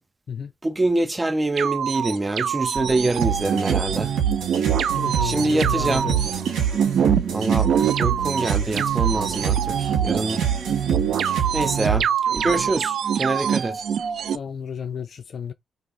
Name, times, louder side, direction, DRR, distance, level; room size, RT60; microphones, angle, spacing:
voice 1, 0.6-4.1 5.2-6.1 7.3-7.7 8.0-10.4 11.5-13.8, right 2 dB, 20° right, 0.7 m, -25 dB
sound 1, 1.6-14.4, right 8 dB, 65° right, 0.4 m, -25 dB
sound 2, 3.2-12.0, right 8 dB, 80° right, 1.3 m, -25 dB
voice 2, 4.9-6.4 14.3-15.5, left 7 dB, 50° left, 0.4 m, -32 dB
2.9 x 2.7 x 3.9 m
cardioid pair, 90°, 0 cm